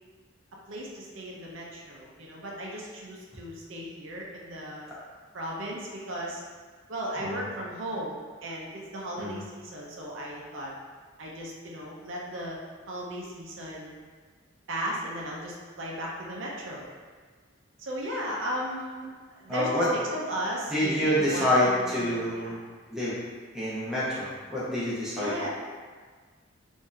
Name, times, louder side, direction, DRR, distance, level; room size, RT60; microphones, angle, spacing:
voice 1, 0.7-4.9 5.3-6.4 6.9-10.7 11.2-12.6 12.9-13.9 14.7-16.9 17.8-19.1 19.3-22.6 25.1-25.5, equal, 70° right, -3 dB, 0.6 m, -36 dB
voice 2, 19.5-19.9 20.7-22.5 22.9-23.2 23.5-25.5, left 1 dB, ahead, -10 dB, 0.9 m, -27 dB
3.5 x 2.6 x 3.2 m, 1.5 s
head